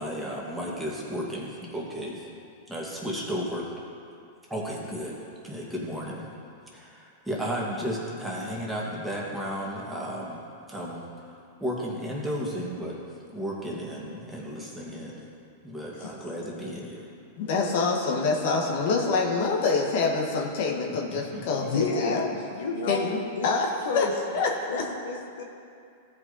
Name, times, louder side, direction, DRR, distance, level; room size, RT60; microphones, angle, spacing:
voice 1, 0.0-2.3 2.7-3.7 4.5-6.3 6.7-10.4 10.7-11.1 11.6-15.2 15.6-17.0 21.1-22.2, equal, 5° right, -4 dB, 2.0 m, -34 dB
voice 2, 17.4-22.2 22.9-23.7 23.9-24.1 24.3-24.9, left 4 dB, 60° left, 1 dB, 1.4 m, -26 dB
voice 3, 21.5-23.1 23.4-23.5 23.9-24.1 24.7-24.8 25.0-25.4, left 4 dB, 80° left, 1 dB, 1.2 m, -29 dB
15.0 x 5.2 x 4.1 m, 2.4 s
hypercardioid pair, 115°, 0 cm